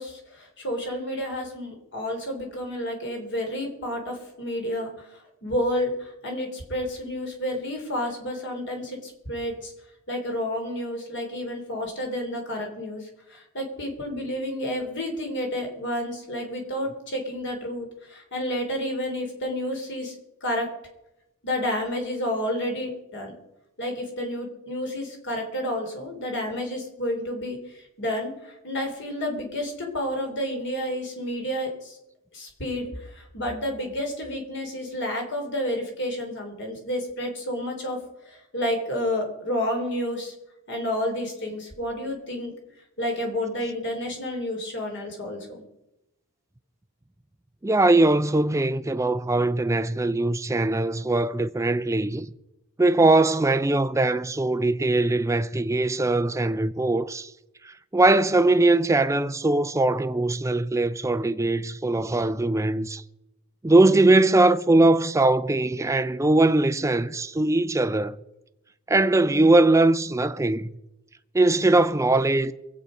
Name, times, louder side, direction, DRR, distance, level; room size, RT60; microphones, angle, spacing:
voice 1, 0.0-4.9 5.4-9.7 10.1-20.1 20.4-20.7 21.4-23.3 23.8-27.6 28.0-32.0 32.3-38.0 38.3-40.3 40.7-42.5 43.0-45.4, left 1 dB, 55° left, 3.6 m, -30 dB
voice 2, 47.6-52.3 52.8-57.3 57.6-63.0 63.6-68.2 68.9-70.8 71.3-72.5, right 2 dB, 15° right, 0.4 m, -21 dB
23.5 x 8.4 x 5.2 m
head